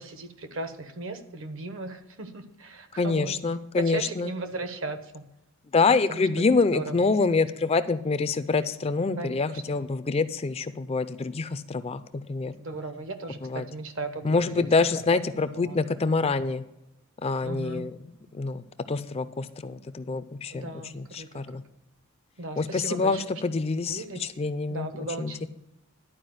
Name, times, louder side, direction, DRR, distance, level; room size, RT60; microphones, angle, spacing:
voice 1, 0.0-3.3 3.8-5.2 5.8-6.4 6.7-7.7 9.2-9.8 12.5-14.9 15.3-15.8 17.4-17.9 20.5-21.4 22.4-23.2 23.9-24.3 24.7-25.5, right 3 dB, 60° right, 8 dB, 1.1 m, -37 dB
voice 2, 3.0-4.3 5.7-12.5 13.4-13.6 14.2-16.6 17.2-18.0 18.3-18.6 18.9-21.6 22.6-24.9 25.2-25.5, left 4 dB, 30° left, 13 dB, 0.4 m, -26 dB
11.5 x 4.8 x 7.7 m, 0.91 s
head